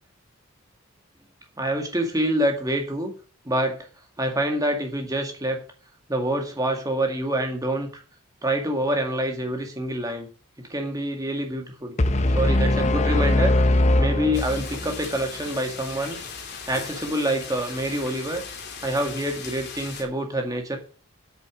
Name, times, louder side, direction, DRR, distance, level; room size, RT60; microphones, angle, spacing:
voice 1, 1.6-3.1 3.5-3.9 4.2-5.6 6.1-8.0 8.4-10.3 10.6-12.0 12.3-13.5 14.0-16.2 16.7-18.4 18.8-20.8, right 1 dB, 15° right, 3 dB, 2.0 m, -26 dB
sound 1, 12.0-15.0, left 1 dB, 30° left, 0.6 m, -21 dB
sound 2, 14.3-20.0, left 5 dB, 50° left, 2.6 m, -38 dB
8.8 x 6.8 x 6.3 m, 0.38 s
head